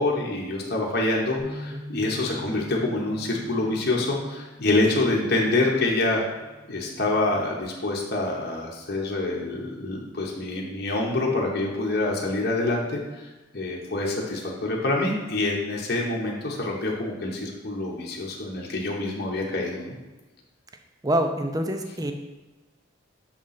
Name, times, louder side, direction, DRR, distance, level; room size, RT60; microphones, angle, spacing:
voice 1, 0.0-6.2 6.7-19.9, left 2 dB, 50° left, -2 dB, 1.0 m, -26 dB
Bass guitar, 1.4-7.6, left 1 dB, 25° left, 0.7 m, -44 dB
voice 2, 21.0-22.1, right 1 dB, 20° right, 5 dB, 0.5 m, -26 dB
6.5 x 3.8 x 5.7 m, 1.1 s
head